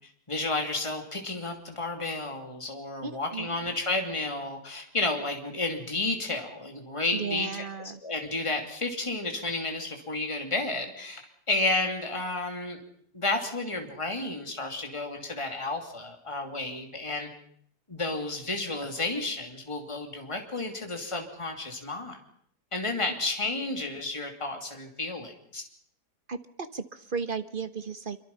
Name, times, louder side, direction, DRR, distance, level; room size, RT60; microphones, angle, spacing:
voice 1, 0.3-7.5 8.0-12.8 13.1-17.3 17.9-22.2 22.7-25.6, left 2 dB, 20° left, 4 dB, 3.0 m, -31 dB
voice 2, 3.0-3.7 7.1-8.0 26.3-28.2, right 5 dB, 35° right, 11 dB, 1.2 m, -35 dB
26.0 x 24.0 x 5.6 m, 0.64 s
omnidirectional pair, 1.7 m